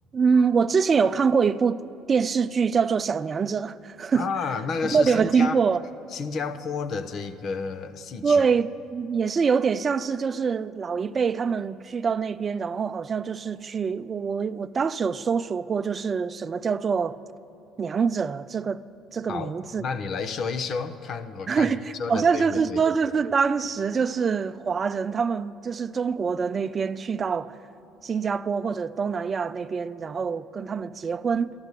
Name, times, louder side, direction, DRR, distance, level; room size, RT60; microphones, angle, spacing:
voice 1, 0.1-1.8 2.1-4.3 4.8-5.8 8.2-17.2 17.8-18.8 19.1-19.8 21.5-27.6 28.0-31.5, right 5 dB, 40° right, 0.5 m, -25 dB
voice 2, 4.1-5.6 6.1-8.4 19.3-21.7 22.0-22.8, left 5 dB, 55° left, 0.9 m, -31 dB
12.0 x 11.5 x 8.2 m
supercardioid pair, 75°, 0 cm